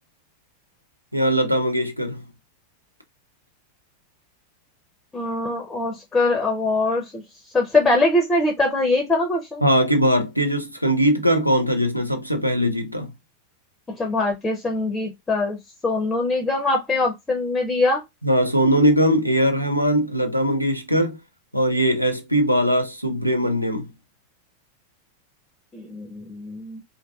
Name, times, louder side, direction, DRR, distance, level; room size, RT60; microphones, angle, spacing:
voice 1, 1.1-2.2 9.6-13.1 18.2-21.2 21.5-23.9, equal, 90° right, 0.5 m, -20 dB
voice 2, 5.1-7.2 7.5-9.6 13.9-15.6 15.8-18.0 25.7-26.8, left 2 dB, 15° left, 0.6 m, -22 dB
2.5 x 2.3 x 2.3 m
figure-of-eight pair, 90°, 0 cm